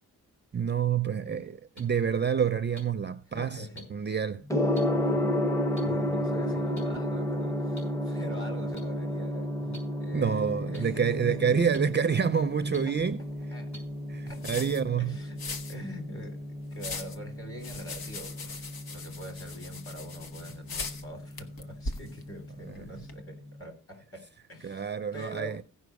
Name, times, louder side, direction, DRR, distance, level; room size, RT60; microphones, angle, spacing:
voice 1, 0.5-4.4 10.1-13.2 14.1-15.2 24.6-25.6, right 7 dB, 30° right, 0.4 m, -28 dB
voice 2, 1.2-1.6 3.3-4.1 4.9-5.4 5.7-9.5 10.0-11.9 12.7-13.8 14.3-25.6, equal, 35° left, 3.5 m, -45 dB
sound 1, 1.7-1.8 2.7-2.8 3.7-3.8 4.7-4.8 5.7-5.8 6.7-6.8 7.8-7.9 8.7-8.8 9.7-9.8 10.7-10.8 11.7-11.8 12.7-12.8 13.7-13.8 14.7-14.8, equal, 55° left, 6.0 m, -45 dB
Gong, 4.5-23.5, left 1 dB, 10° left, 0.7 m, -33 dB
sound 2, 11.0-23.2, left 3 dB, 85° left, 1.2 m, -43 dB
16.0 x 5.6 x 4.7 m
wide cardioid pair, 170°, 35 cm